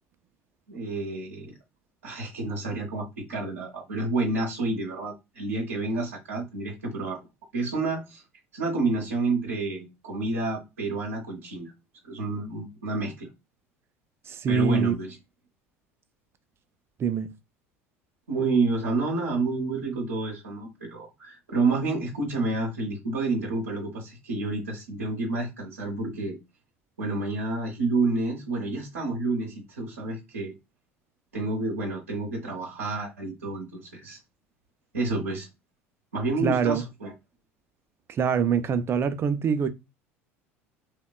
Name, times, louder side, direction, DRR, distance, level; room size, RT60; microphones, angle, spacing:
voice 1, 0.7-1.6 2.0-7.3 7.5-8.2 8.5-11.7 12.0-13.3 14.5-15.1 18.3-26.4 27.0-30.5 31.3-34.2 34.9-35.5 36.1-37.1, right 3 dB, 85° right, 0.7 m, -29 dB
voice 2, 14.3-14.9 17.0-17.3 36.4-36.8 38.1-39.7, right 6 dB, 35° right, 0.4 m, -24 dB
2.8 x 2.1 x 2.2 m
hypercardioid pair, 70°, 7 cm